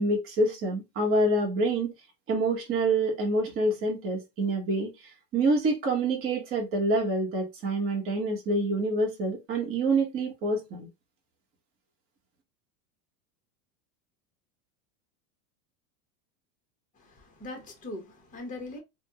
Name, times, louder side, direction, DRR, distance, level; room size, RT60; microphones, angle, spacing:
voice 1, 0.0-1.9 2.3-4.9 5.3-10.9, right 2 dB, 25° right, 1.0 m, -26 dB
voice 2, 17.0-18.8, left 2 dB, 15° left, 1.0 m, -41 dB
3.3 x 2.2 x 2.8 m
supercardioid pair, 150°, 47 cm